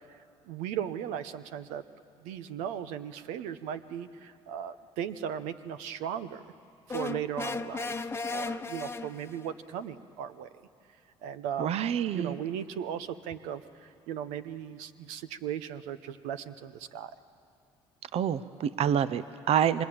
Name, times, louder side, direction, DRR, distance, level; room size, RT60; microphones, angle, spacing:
voice 1, 0.5-1.8 2.2-6.4 6.9-10.5 11.2-11.8 12.1-17.1, right 9 dB, 85° right, 11 dB, 0.9 m, -37 dB
sound 1, 6.9-9.5, left 3 dB, 20° left, 1.0 m, -35 dB
voice 2, 11.6-12.4 18.1-19.8, right 9 dB, 60° right, 14 dB, 0.8 m, -27 dB
27.5 x 24.5 x 8.8 m, 2.5 s
supercardioid pair, 75°, 12 cm